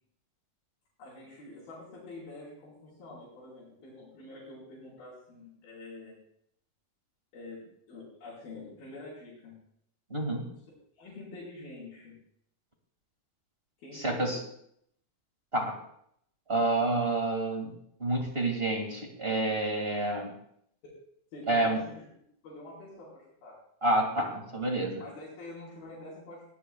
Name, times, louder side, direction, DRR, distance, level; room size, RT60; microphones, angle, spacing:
voice 1, 1.0-6.1 7.3-9.5 11.0-12.2 13.8-14.4 21.3-22.0 22.4-23.6 25.0-26.4, left 2 dB, 75° left, -7 dB, 6.1 m, -46 dB
voice 2, 10.1-10.5 13.9-14.4 15.5-15.8 16.5-17.7 18.0-20.3 21.5-21.8 23.8-25.0, right 2 dB, 25° right, 2 dB, 1.4 m, -28 dB
20.0 x 16.5 x 2.3 m, 0.70 s
omnidirectional pair, 4.3 m